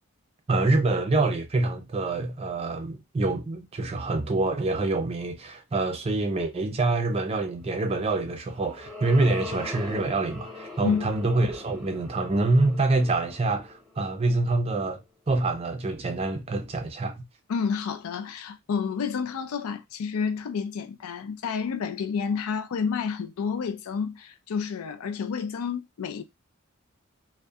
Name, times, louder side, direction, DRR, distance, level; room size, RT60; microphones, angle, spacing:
voice 1, 0.5-17.2, right 2 dB, 30° right, 0.4 m, -26 dB
sound 1, 8.2-14.7, left 3 dB, ahead, 0.8 m, -42 dB
voice 2, 17.5-26.2, left 6 dB, 85° left, 0.4 m, -29 dB
2.6 x 2.1 x 2.3 m
head